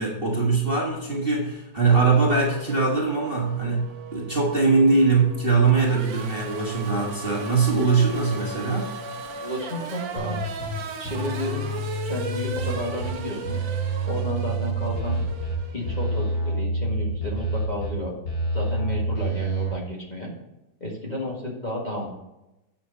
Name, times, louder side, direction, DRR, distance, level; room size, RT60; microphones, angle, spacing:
voice 1, 0.0-8.9, right 4 dB, 30° right, -3 dB, 1.5 m, -22 dB
Race car auto racing / Accelerating revving vroom, 1.8-16.6, right 5 dB, 75° right, 1.7 m, -37 dB
voice 2, 9.4-10.5 11.0-11.7 12.1-13.6 14.1-15.2 15.7-18.1 18.5-20.3 20.8-22.1, left 1 dB, 25° left, -3 dB, 1.8 m, -32 dB
sound 1, 10.2-10.7 11.0-13.1 13.4-15.5 15.8-17.9 18.2-19.7, right 2 dB, 70° left, 3.4 m, -28 dB
8.8 x 6.6 x 3.9 m, 0.94 s
omnidirectional pair, 2.1 m